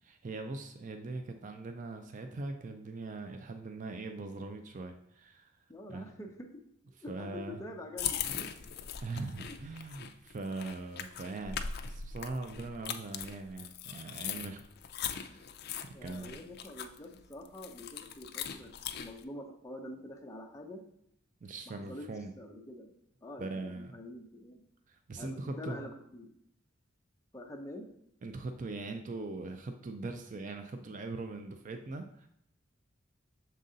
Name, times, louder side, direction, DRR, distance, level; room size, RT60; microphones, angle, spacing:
voice 1, 0.0-5.5 5.9-6.1 7.1-7.6 9.0-14.6 15.1-15.6 16.0-16.4 21.4-22.3 23.4-24.0 24.9-25.9 28.2-32.3, right 3 dB, 40° right, 6 dB, 0.4 m, -41 dB
voice 2, 5.7-8.2 9.5-9.6 15.9-18.7 19.0-20.8 21.7-22.1 22.4-22.9 23.2-24.6 25.2-26.3 27.3-27.9, left 1 dB, 15° left, 2 dB, 0.7 m, -46 dB
sound 1, 8.0-19.2, left 8 dB, 55° left, 0.4 m, -40 dB
6.4 x 3.9 x 3.9 m, 0.72 s
head